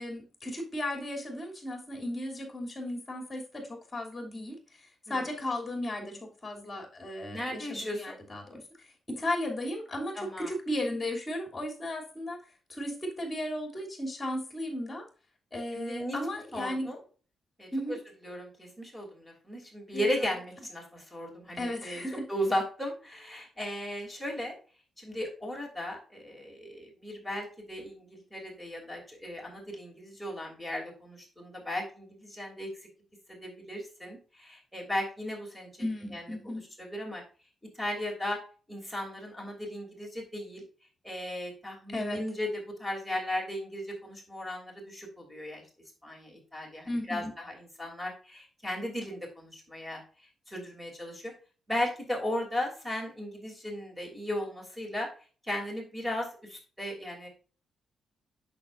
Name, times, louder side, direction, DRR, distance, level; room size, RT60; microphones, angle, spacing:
voice 1, 0.0-4.6 5.1-12.4 12.7-15.0 15.5-16.9 17.7-18.0 19.9-20.2 21.6-22.3 35.8-36.6 41.9-42.2 46.9-47.3, left 1 dB, 20° left, 1 dB, 2.9 m, -35 dB
voice 2, 7.3-8.2 10.1-10.5 15.7-16.2 16.5-17.0 17.6-18.0 18.2-24.5 25.0-32.7 33.3-35.7 36.1-36.3 36.8-37.2 37.8-38.4 38.7-40.6 41.0-45.6 46.0-50.0 50.5-51.3 51.7-55.1 55.4-57.3, left 1 dB, ahead, -1 dB, 2.9 m, -36 dB
8.5 x 6.7 x 2.6 m, 0.37 s
cardioid pair, 125°, 0 cm